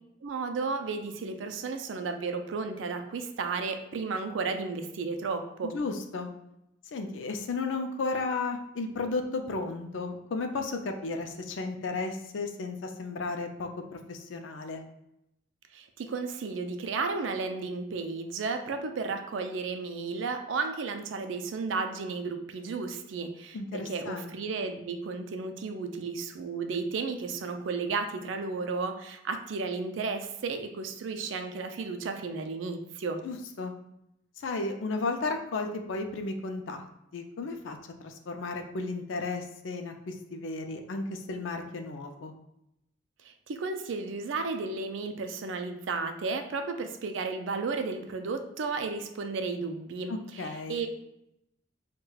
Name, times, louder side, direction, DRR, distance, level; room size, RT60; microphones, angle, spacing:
voice 1, 0.2-5.7 15.7-33.2 43.2-50.9, right 4 dB, 90° right, 7 dB, 0.4 m, -33 dB
voice 2, 5.7-6.3 6.9-14.8 23.5-24.5 33.2-33.7 34.4-36.8 37.1-42.3 50.1-50.8, left 3 dB, 90° left, 5 dB, 0.4 m, -34 dB
4.7 x 2.2 x 2.3 m, 0.83 s
head